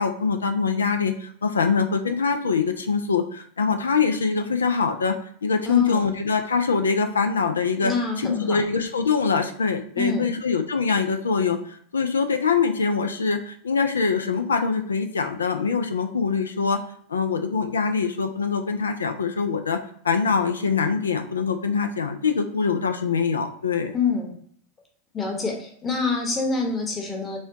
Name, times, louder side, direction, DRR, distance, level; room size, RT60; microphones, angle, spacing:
voice 1, 0.0-5.2 5.4-7.9 8.2-16.8 17.1-19.8 20.0-23.9, left 5 dB, 80° left, 7 dB, 0.4 m, -24 dB
voice 2, 5.6-6.1 7.8-8.6 10.0-10.3 23.9-24.3 25.1-27.4, left 4 dB, 25° left, 1 dB, 1.0 m, -26 dB
4.4 x 2.3 x 3.5 m, 0.62 s
figure-of-eight pair, 85°, 0 cm